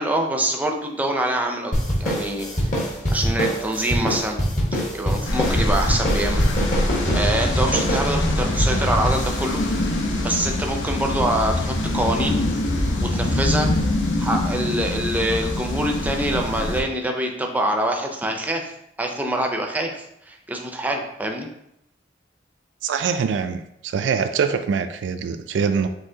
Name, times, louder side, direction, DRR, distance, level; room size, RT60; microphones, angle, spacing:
voice 1, 0.0-1.7 2.0-2.7 3.1-4.4 4.7-6.5 6.8-9.6 10.2-12.4 13.0-13.7 14.2-18.7 19.0-21.5, right 1 dB, 10° right, 2 dB, 0.5 m, -25 dB
sound 1, 1.7-10.6, equal, 45° left, 1.2 m, -25 dB
sound 2, 5.2-16.8, left 1 dB, 90° left, 0.8 m, -24 dB
voice 2, 22.8-25.9, right 6 dB, 75° right, 9 dB, 0.3 m, -24 dB
5.4 x 3.1 x 2.7 m, 0.80 s
head